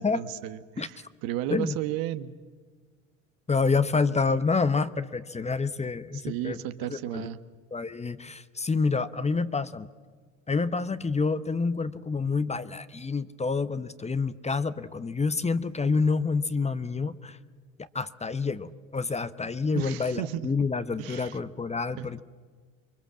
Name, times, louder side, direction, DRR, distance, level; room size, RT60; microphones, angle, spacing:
voice 1, 0.0-2.4 3.7-3.8 4.1-4.2 6.1-7.4 19.7-20.5 21.0-21.4 22.0-22.2, right 13 dB, 60° right, 11 dB, 1.5 m, -34 dB
voice 2, 3.5-6.6 6.9-7.3 7.7-9.9 10.5-17.4 17.9-22.2, left 4 dB, 15° left, 13 dB, 1.0 m, -28 dB
28.5 x 23.5 x 7.4 m, 1.5 s
hypercardioid pair, 70°, 39 cm